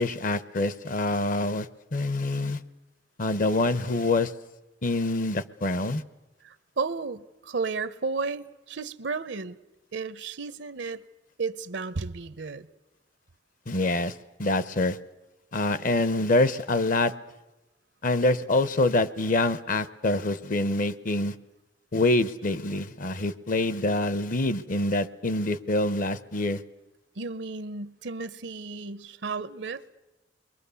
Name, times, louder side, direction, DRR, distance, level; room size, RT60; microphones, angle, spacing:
voice 1, 0.0-2.6 3.2-4.3 4.8-6.0 13.7-15.0 15.5-17.1 18.0-21.3 21.9-26.6, left 2 dB, 50° left, 15 dB, 0.8 m, -26 dB
voice 2, 6.4-9.6 9.9-11.0 11.4-12.7 27.2-29.8, right 4 dB, 80° right, 15 dB, 0.8 m, -33 dB
29.0 x 22.0 x 6.9 m, 1.0 s
head